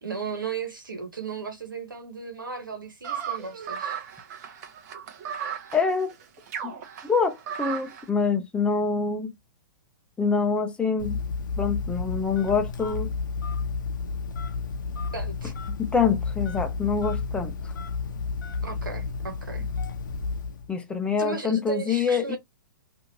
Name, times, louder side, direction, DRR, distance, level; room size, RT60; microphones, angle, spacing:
voice 1, 0.0-4.0 15.1-15.5 18.6-19.7 21.2-22.4, right 5 dB, 90° right, 1.1 m, -35 dB
sound 1, 3.0-8.1, right 8 dB, 50° right, 0.8 m, -35 dB
voice 2, 5.7-6.1 7.0-9.3 10.2-11.2 11.6-13.1 15.8-17.7 20.7-22.4, left 5 dB, 10° left, 0.5 m, -25 dB
Telephone, 11.0-20.7, left 4 dB, 70° left, 0.6 m, -31 dB
2.9 x 2.5 x 2.7 m
hypercardioid pair, 125°, 11 cm